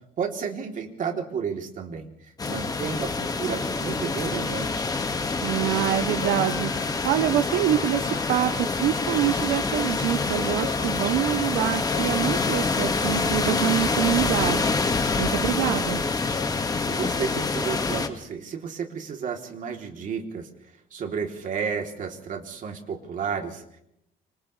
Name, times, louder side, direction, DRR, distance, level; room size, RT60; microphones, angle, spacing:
voice 1, 0.2-4.9 16.9-20.5 20.9-23.8, right 6 dB, 50° right, 3 dB, 3.4 m, -32 dB
sound 1, 2.4-18.1, left 4 dB, 20° left, 1.9 m, -26 dB
voice 2, 5.4-14.7 15.2-16.0, right 12 dB, 85° right, 9 dB, 1.0 m, -26 dB
sound 2, 6.1-17.2, left 9 dB, 85° left, 2.6 m, -43 dB
29.5 x 27.0 x 3.4 m, 0.78 s
cardioid pair, 110°, 17 cm